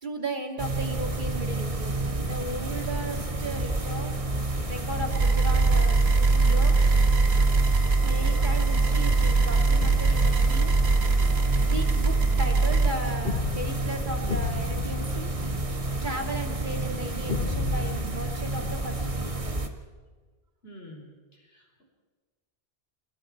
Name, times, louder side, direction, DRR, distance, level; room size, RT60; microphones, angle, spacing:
voice 1, 0.0-4.2 4.7-6.7 8.0-10.8 11.6-15.3 16.0-19.6, right 1 dB, 50° right, 3 dB, 2.7 m, -36 dB
sound 1, 0.6-19.7, right 2 dB, 35° right, 1.5 m, -30 dB
sound 2, 5.1-12.9, right 3 dB, 75° right, 1.5 m, -22 dB
sound 3, 9.8-11.2 13.2-16.2 17.3-19.4, left 4 dB, 55° left, 1.2 m, -34 dB
voice 2, 20.6-21.8, equal, 70° left, 1 dB, 4.3 m, -48 dB
29.5 x 21.0 x 4.6 m, 1.4 s
omnidirectional pair, 1.1 m